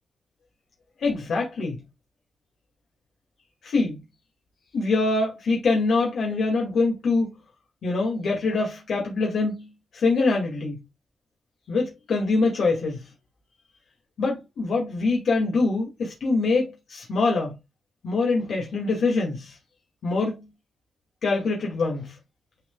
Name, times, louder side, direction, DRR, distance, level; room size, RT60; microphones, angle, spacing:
voice 1, 1.0-1.8 3.6-4.0 4.7-7.3 7.8-10.8 11.7-13.1 14.2-17.6 18.0-19.6 20.0-20.4 21.2-22.2, left 3 dB, 70° left, 2.2 m, -24 dB
10.5 x 4.0 x 2.4 m
wide cardioid pair, 150°, 0 cm